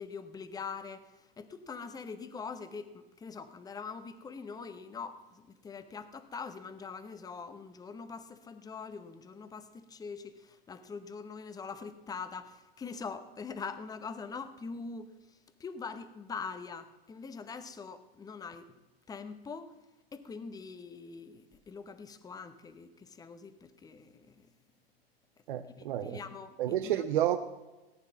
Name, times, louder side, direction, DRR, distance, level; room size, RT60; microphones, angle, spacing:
voice 1, 0.0-18.7 19.1-19.7 20.1-24.5 25.5-27.0, left 5 dB, 10° left, 12 dB, 1.0 m, -43 dB
voice 2, 25.5-26.2 26.6-27.4, right 12 dB, 55° right, 8 dB, 0.8 m, -30 dB
18.0 x 9.6 x 5.9 m, 1.1 s
hypercardioid pair, 105°, 31 cm